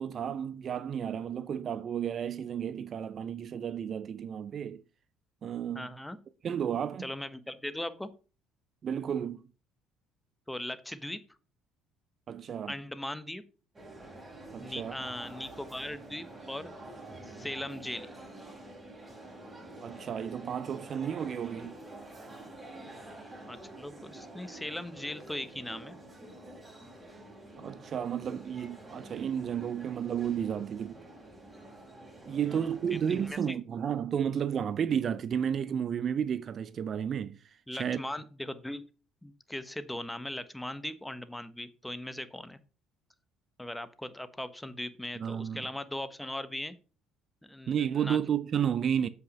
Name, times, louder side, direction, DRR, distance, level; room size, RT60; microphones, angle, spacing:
voice 1, 0.0-4.8 5.4-5.9 6.4-7.1 8.8-9.4 12.3-12.7 14.5-15.0 19.8-21.8 27.6-31.0 32.3-37.4 37.7-38.0 45.2-45.6 47.7-49.1, right 8 dB, 50° right, 0.5 m, -32 dB
voice 2, 5.7-6.2 7.0-8.1 10.5-11.2 12.7-13.4 14.6-16.7 17.2-18.1 23.5-25.9 32.5-33.6 37.7-38.8 39.2-42.6 43.6-46.8 47.4-48.2, left 1 dB, 5° left, 1.1 m, -39 dB
sound 1, 13.7-33.3, right 1 dB, 25° right, 5.1 m, -48 dB
7.8 x 5.9 x 5.3 m
hypercardioid pair, 70°, 0 cm